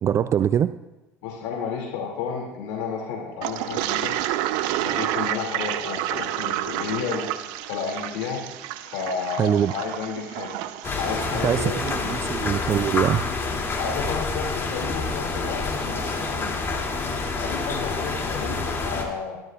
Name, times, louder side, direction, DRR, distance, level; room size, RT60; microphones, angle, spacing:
voice 1, 0.0-0.7 9.4-9.7 11.4-13.2, right 9 dB, 40° right, 12 dB, 0.4 m, -23 dB
voice 2, 1.2-4.1 4.8-7.3 7.7-8.4 8.8-10.6 11.0-12.1 13.8-16.6 17.4-19.4, left 5 dB, 75° left, -2 dB, 2.5 m, -31 dB
Toilet flush, 3.4-12.0, right 13 dB, 70° right, 0.7 m, -30 dB
sound 1, 10.8-19.0, left 3 dB, 30° left, 2.7 m, -28 dB
21.5 x 12.0 x 2.4 m, 1.1 s
hypercardioid pair, 80°, 7 cm